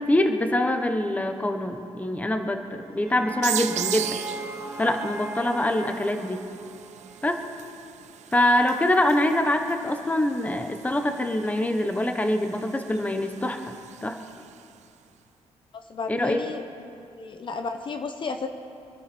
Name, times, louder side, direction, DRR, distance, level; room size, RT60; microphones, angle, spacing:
voice 1, 0.0-4.2 4.8-6.4 7.2-7.4 8.3-13.7 14.0-14.2 16.1-16.4, left 1 dB, 10° left, 6 dB, 1.0 m, -24 dB
sound 1, 2.6-7.8, right 3 dB, 25° right, 1.3 m, -40 dB
sound 2, 3.4-14.8, right 11 dB, 75° right, 0.5 m, -38 dB
voice 2, 15.7-16.6 17.2-18.5, left 4 dB, 45° left, 6 dB, 0.9 m, -32 dB
24.5 x 11.5 x 4.4 m, 2.5 s
cardioid pair, 110°, 12 cm